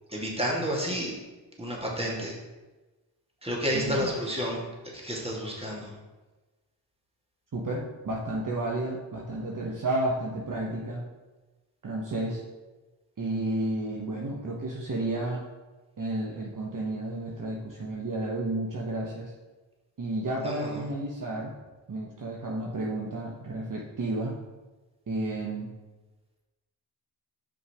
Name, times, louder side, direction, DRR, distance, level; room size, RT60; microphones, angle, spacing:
voice 1, 0.1-1.1 1.6-2.4 3.4-5.9 20.4-20.8, equal, 15° right, -3 dB, 2.4 m, -31 dB
voice 2, 3.7-4.1 7.5-11.0 11.8-12.4 13.2-15.4 16.0-19.3 20.0-21.5 21.9-24.3 25.1-25.7, right 2 dB, 45° right, -2 dB, 1.1 m, -31 dB
5.6 x 5.2 x 5.0 m, 1.2 s
cardioid pair, 50°, 44 cm